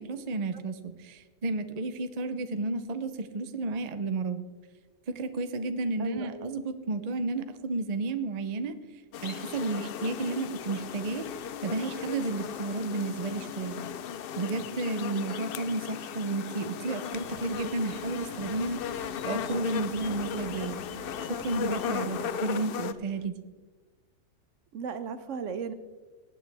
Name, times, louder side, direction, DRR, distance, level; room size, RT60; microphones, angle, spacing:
voice 1, 0.0-4.4 5.1-8.7 9.2-11.3 11.6-13.8 14.4-20.8 21.3-23.3, right 3 dB, 40° right, 10 dB, 0.6 m, -32 dB
voice 2, 6.0-6.5 22.2-22.3 24.7-25.7, right 6 dB, 65° right, 12 dB, 0.9 m, -36 dB
sound 1, 9.1-22.9, left 9 dB, 85° left, 0.5 m, -36 dB
sound 2, 17.1-23.3, right 7 dB, 80° right, 1.2 m, -49 dB
19.0 x 8.6 x 3.4 m, 1.3 s
omnidirectional pair, 1.5 m